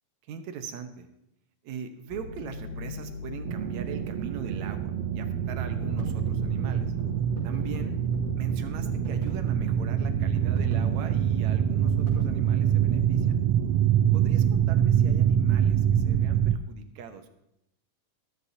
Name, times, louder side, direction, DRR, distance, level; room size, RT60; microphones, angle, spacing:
voice 1, 0.3-1.1 1.6-6.9 7.4-7.9 8.4-13.4 14.1-17.3, right 7 dB, 75° right, 7 dB, 2.2 m, -41 dB
sound 1, 2.1-13.4, left 4 dB, 70° left, 2.0 m, -40 dB
sound 2, 3.5-16.6, right 10 dB, 90° right, 1.4 m, -25 dB
sound 3, 5.7-13.0, right 1 dB, 15° right, 4.3 m, -42 dB
14.0 x 13.0 x 2.7 m, 0.82 s
omnidirectional pair, 3.4 m